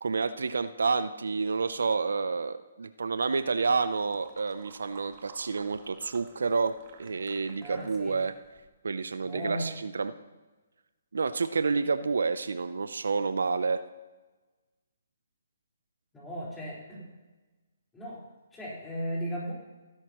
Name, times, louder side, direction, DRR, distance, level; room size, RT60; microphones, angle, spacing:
voice 1, 0.0-8.3 8.8-10.1 11.1-13.8, right 4 dB, 75° right, 12 dB, 0.5 m, -29 dB
sound 1, 3.4-8.7, right 6 dB, 35° right, 1.5 m, -54 dB
voice 2, 7.6-8.1 9.2-9.7 16.1-17.1 17.9-18.2 18.5-19.5, equal, 10° left, -7 dB, 4.3 m, -36 dB
16.5 x 11.0 x 3.0 m, 1.2 s
hypercardioid pair, 145°, 0 cm